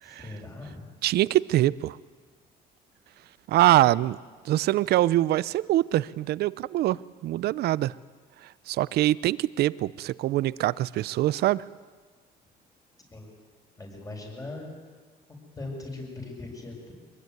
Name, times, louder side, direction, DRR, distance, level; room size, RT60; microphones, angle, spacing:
voice 1, 0.0-0.9 13.1-13.3 13.8-14.7 15.6-16.9, left 2 dB, 20° left, 7.0 m, -39 dB
voice 2, 1.0-2.0 3.5-4.2 4.4-7.9 8.7-11.6, right 15 dB, 70° right, 0.7 m, -24 dB
23.5 x 22.0 x 9.5 m
cardioid pair, 110°, 17 cm